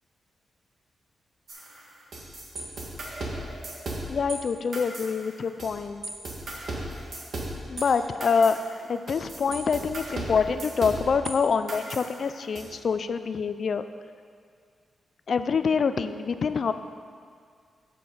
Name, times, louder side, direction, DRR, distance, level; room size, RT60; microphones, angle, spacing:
sound 1, 1.5-4.4 4.7-5.8 6.0-11.3 11.7-12.6, right 2 dB, 55° right, 1.7 m, -36 dB
voice 1, 4.1-6.0 7.7-8.6 8.9-13.9 15.3-16.7, left 5 dB, 55° left, 11 dB, 0.4 m, -26 dB
11.0 x 7.5 x 4.0 m, 2.1 s
wide cardioid pair, 130°, 0 cm